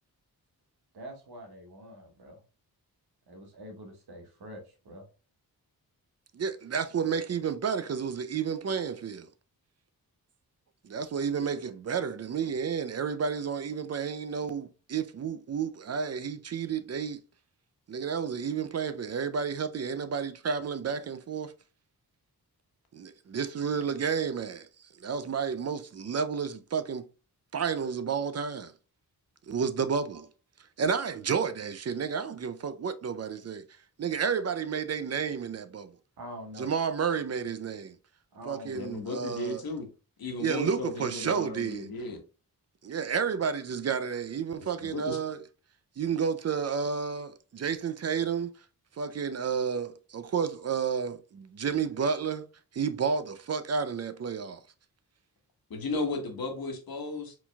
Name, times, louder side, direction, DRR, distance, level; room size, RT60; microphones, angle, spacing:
voice 1, 0.9-2.4 3.3-5.1 36.2-36.7 38.3-38.7, equal, 85° right, 1.4 m, -45 dB
voice 2, 6.3-9.3 10.8-17.2 17.9-21.5 22.9-24.7 25.0-27.1 27.5-28.7 29.5-30.3 30.8-33.6 34.0-35.9 36.6-37.9 38.5-39.6 40.4-41.9 42.8-45.4 46.0-48.5 49.0-52.5 52.7-54.6, right 6 dB, 45° right, 0.5 m, -31 dB
voice 3, 38.7-39.9 40.2-42.2 44.6-45.2 55.7-57.3, left 2 dB, 70° left, 1.2 m, -35 dB
4.5 x 3.9 x 2.2 m
cardioid pair, 75°, 38 cm